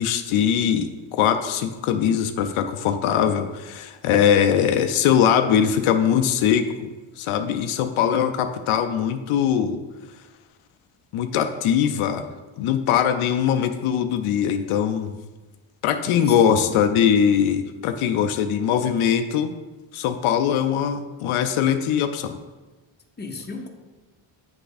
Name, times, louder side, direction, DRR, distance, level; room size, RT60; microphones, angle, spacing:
voice 1, 0.0-6.9 7.2-9.8 11.1-12.2 12.6-15.2 15.8-19.5 19.9-22.4, left 8 dB, 80° left, 7 dB, 0.6 m, -21 dB
voice 2, 16.1-16.9 23.2-23.7, left 3 dB, 20° left, 3 dB, 0.8 m, -35 dB
8.9 x 3.3 x 4.0 m, 1.2 s
cardioid pair, 80°, 49 cm